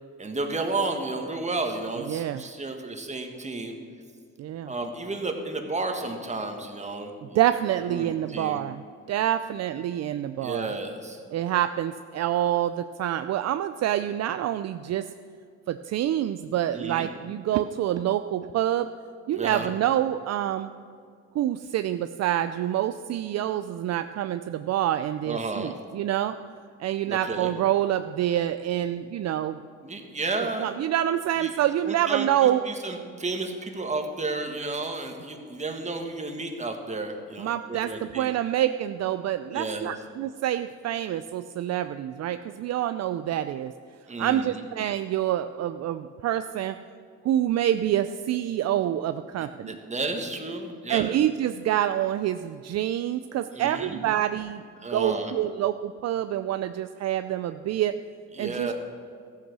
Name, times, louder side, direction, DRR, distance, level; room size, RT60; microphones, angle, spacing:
voice 1, 0.2-3.7 4.7-7.4 7.9-8.6 10.4-11.2 16.7-17.1 19.3-19.7 25.3-25.7 27.1-27.5 29.8-30.8 31.4-31.5 31.8-38.3 39.5-39.9 44.1-44.6 49.4-51.1 53.5-54.0 54.8-55.3 58.3-58.7, right 3 dB, 25° right, 4 dB, 1.7 m, -32 dB
voice 2, 2.1-2.4 4.4-4.7 7.3-8.8 9.1-10.7 11.3-15.1 15.7-18.9 19.3-20.7 21.3-26.4 26.8-29.6 30.6-32.6 37.4-43.7 44.2-46.8 47.2-49.8 50.9-54.6 54.9-58.0 58.4-58.7, right 12 dB, 60° right, 10 dB, 0.5 m, -27 dB
14.0 x 8.2 x 6.2 m, 2.2 s
cardioid pair, 90°, 30 cm